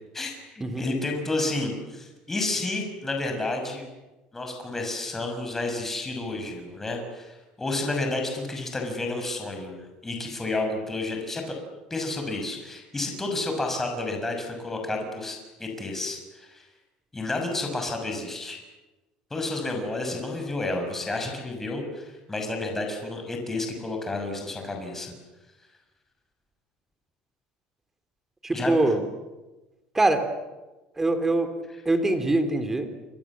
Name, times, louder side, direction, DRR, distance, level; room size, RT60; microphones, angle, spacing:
voice 1, 0.1-3.8 4.3-9.8 10.0-11.4 11.9-16.7 17.1-18.6 19.3-25.1 28.5-28.8, left 2 dB, 15° left, 3 dB, 6.3 m, -31 dB
voice 2, 28.4-29.0 29.9-30.2 31.0-31.5 31.8-32.9, right 2 dB, 10° right, 8 dB, 3.3 m, -23 dB
29.5 x 23.5 x 7.5 m, 1.1 s
cardioid pair, 135°, 3 cm